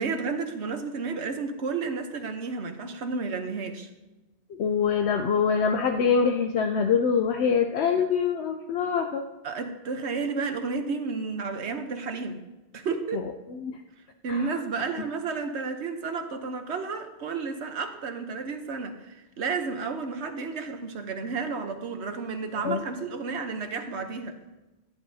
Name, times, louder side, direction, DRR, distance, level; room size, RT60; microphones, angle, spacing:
voice 1, 0.0-3.9 9.4-12.4 12.7-13.3 14.2-24.4, right 4 dB, 70° right, 6 dB, 1.2 m, -32 dB
voice 2, 4.6-9.2 13.1-13.2 13.6-13.7 14.3-14.4 22.6-22.8, left 6 dB, 70° left, 5 dB, 0.9 m, -24 dB
14.5 x 10.0 x 2.7 m, 1.1 s
omnidirectional pair, 1.2 m